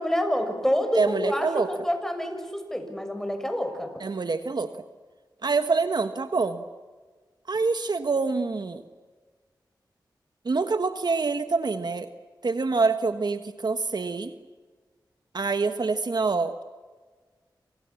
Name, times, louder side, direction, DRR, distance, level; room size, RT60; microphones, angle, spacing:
voice 1, 0.0-3.9, equal, 5° left, 6 dB, 6.7 m, -27 dB
voice 2, 1.0-1.7 4.0-4.7 5.4-6.6 7.5-8.8 10.4-12.1 12.4-14.3 15.3-16.6, right 4 dB, 60° right, 9 dB, 1.4 m, -26 dB
28.0 x 27.5 x 7.3 m, 1.4 s
cardioid pair, 50°, 8 cm